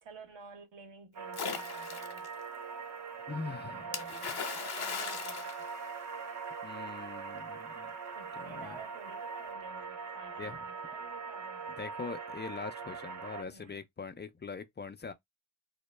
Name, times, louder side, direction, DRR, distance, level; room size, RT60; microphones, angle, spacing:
voice 1, 0.0-2.3 3.4-5.5 8.1-11.7 13.5-13.8, right 4 dB, 65° right, 0.9 m, -52 dB
sound 1, 1.2-13.4, right 5 dB, 35° right, 0.6 m, -42 dB
Splash splatter, 1.3-2.3 3.9-6.4, left 6 dB, 50° left, 0.7 m, -38 dB
voice 2, 3.3-3.9 6.6-7.9 8.4-8.8 10.4-10.6 11.8-15.1, left 4 dB, 25° left, 0.3 m, -42 dB
2.0 x 2.0 x 3.1 m
cardioid pair, 50°, 49 cm